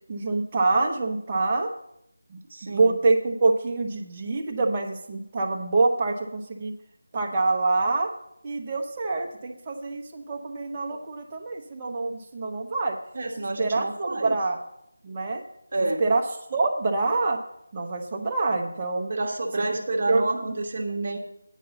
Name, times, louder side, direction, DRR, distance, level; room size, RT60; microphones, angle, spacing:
voice 1, 0.1-1.7 2.3-2.4 2.7-6.7 7.1-8.1 8.4-13.0 13.6-14.6 15.0-15.4 16.0-16.2 16.5-17.4 17.7-19.1 19.6-19.8 20.1-20.3, right 3 dB, 20° right, 1 dB, 0.9 m, -25 dB
voice 2, 2.5-3.0 13.1-14.4 15.7-16.0 19.1-21.2, right 2 dB, 45° right, 3 dB, 1.1 m, -29 dB
9.2 x 5.4 x 6.9 m, 0.79 s
figure-of-eight pair, 170°, 0 cm